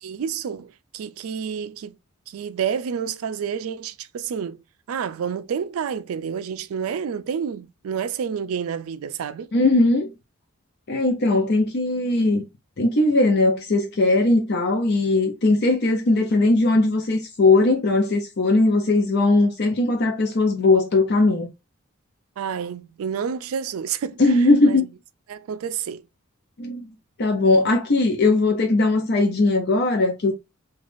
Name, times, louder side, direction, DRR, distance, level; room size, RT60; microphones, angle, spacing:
voice 1, 0.0-2.0 2.3-4.6 4.9-9.5 22.4-24.2 24.6-24.9 25.3-26.0, right 7 dB, 80° right, 0.4 m, -29 dB
voice 2, 9.5-10.1 10.9-12.4 12.8-21.5 24.2-24.8 26.6-26.9 27.2-30.3, left 2 dB, 50° left, 0.5 m, -19 dB
3.3 x 2.3 x 2.5 m
head